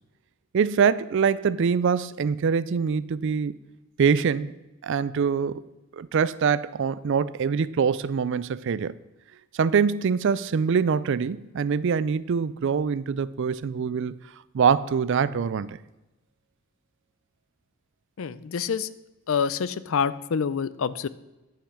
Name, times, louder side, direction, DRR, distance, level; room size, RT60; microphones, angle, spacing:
voice 1, 0.5-3.5 4.0-4.5 4.8-5.6 5.9-8.9 9.5-14.2 14.5-15.8, right 6 dB, 55° right, 0.3 m, -24 dB
voice 2, 18.2-18.9 19.3-21.1, left 6 dB, 65° left, 0.4 m, -27 dB
10.0 x 5.8 x 6.3 m
head